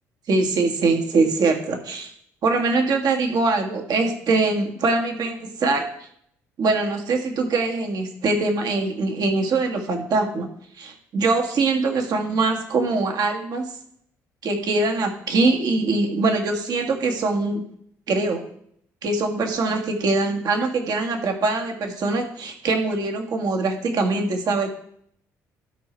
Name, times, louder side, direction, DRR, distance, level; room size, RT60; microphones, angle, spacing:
voice 1, 0.3-2.1 2.4-5.8 6.6-10.5 10.8-13.7 14.4-17.7 18.1-18.4 19.0-24.7, right 3 dB, 60° right, 4 dB, 1.7 m, -23 dB
12.0 x 4.9 x 4.5 m, 0.68 s
hypercardioid pair, 55°, 8 cm